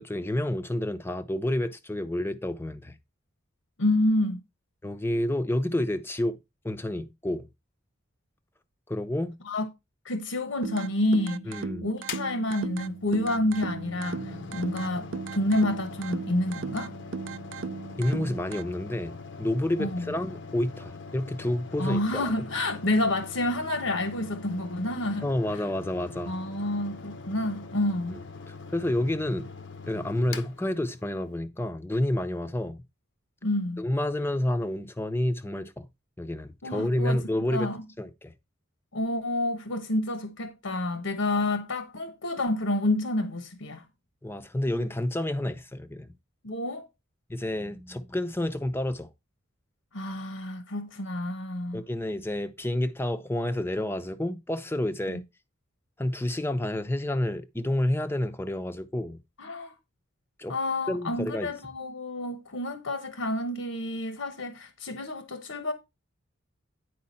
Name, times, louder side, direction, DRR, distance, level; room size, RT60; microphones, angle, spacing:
voice 1, 0.0-2.9 4.8-6.4 6.6-7.5 8.9-9.4 11.5-11.9 18.0-22.3 25.2-26.4 28.7-29.5 29.9-32.8 33.8-35.9 36.2-37.7 38.0-38.3 44.2-46.2 47.3-49.1 51.7-55.2 56.0-59.2 60.4-60.6 60.9-61.5, left 1 dB, 10° left, 0.5 m, -29 dB
voice 2, 3.8-4.4 9.4-9.7 10.0-16.9 19.8-20.1 21.8-25.6 26.2-28.2 33.4-33.8 36.6-37.2 37.5-37.8 38.9-43.9 46.4-46.9 49.9-51.8 55.1-55.2 59.4-59.7 60.5-65.7, left 1 dB, 75° left, 1.0 m, -29 dB
sound 1, 10.6-18.6, right 5 dB, 65° right, 0.4 m, -37 dB
Mechanical fan, 12.0-31.4, left 4 dB, 55° left, 0.7 m, -43 dB
9.7 x 4.7 x 4.2 m
head